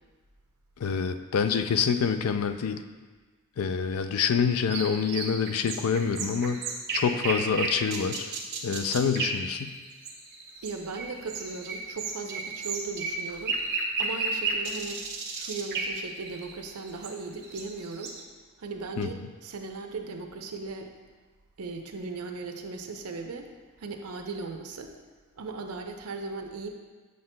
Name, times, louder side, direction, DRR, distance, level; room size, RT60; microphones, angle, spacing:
voice 1, 0.8-2.8 3.6-6.6 6.9-8.3 8.6-9.8 19.0-19.1, left 6 dB, 75° left, 9 dB, 0.4 m, -26 dB
sound 1, 4.7-18.2, right 3 dB, 50° right, 0.8 m, -33 dB
voice 2, 10.6-13.6 14.0-15.1 15.4-18.2 18.6-20.9 21.6-23.5 23.8-24.9 25.4-26.7, right 4 dB, 90° right, 4 dB, 0.6 m, -37 dB
7.5 x 6.6 x 2.2 m, 1.4 s
head